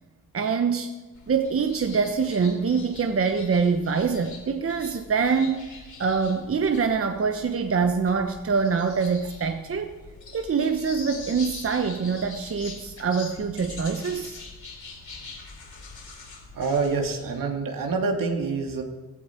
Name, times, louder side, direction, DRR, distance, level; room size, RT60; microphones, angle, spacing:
voice 1, 0.3-0.9 1.3-9.9 10.3-14.4, right 5 dB, 40° right, 6 dB, 1.1 m, -25 dB
sound 1, 1.1-17.2, left 4 dB, 55° left, 4.4 m, -43 dB
voice 2, 16.5-18.8, right 4 dB, 70° right, 3 dB, 2.4 m, -26 dB
16.0 x 14.5 x 4.5 m, 1.2 s
cardioid pair, 70°, 35 cm